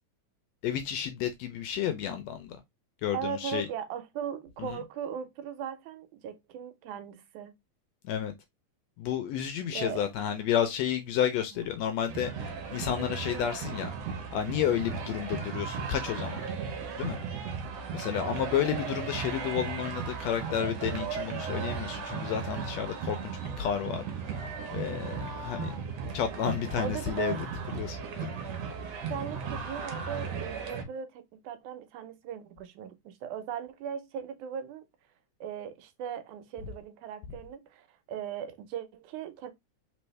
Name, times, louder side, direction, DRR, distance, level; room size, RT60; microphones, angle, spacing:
voice 1, 0.6-2.6 3.0-3.7 4.6-4.8 8.0-8.3 9.0-13.9 14.3-16.4 17.0-17.2 17.9-24.0 24.7-25.8 26.1-27.3 27.8-28.4, left 9 dB, 80° left, 1.6 m, -31 dB
voice 2, 3.1-7.5 9.7-10.1 11.5-11.7 18.2-18.5 26.0-26.2 26.8-27.5 29.1-34.9 35.4-39.5, right 8 dB, 85° right, 2.2 m, -38 dB
sound 1, 12.1-30.8, right 5 dB, 70° right, 1.9 m, -36 dB
4.4 x 3.4 x 3.1 m
omnidirectional pair, 3.4 m